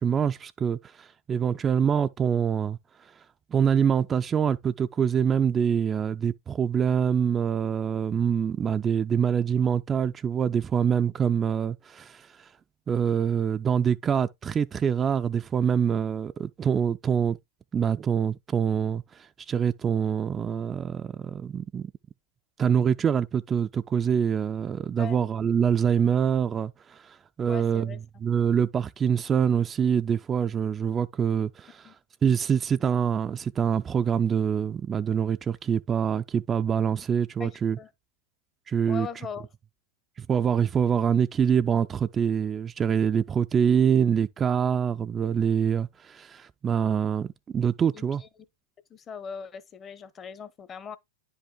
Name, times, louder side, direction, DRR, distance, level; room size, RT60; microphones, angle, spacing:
voice 1, 0.0-3.2 3.5-12.5 12.9-17.4 17.7-21.9 22.6-32.0 32.2-37.8 38.7-39.1 40.2-48.2, right 7 dB, 25° right, 0.4 m, -25 dB
voice 2, 27.5-28.0 31.8-31.9 37.4-37.9 38.9-39.5 47.9-48.3 48.9-51.0, left 6 dB, 25° left, 0.8 m, -40 dB
9.9 x 5.4 x 2.2 m
hypercardioid pair, 100°, 0 cm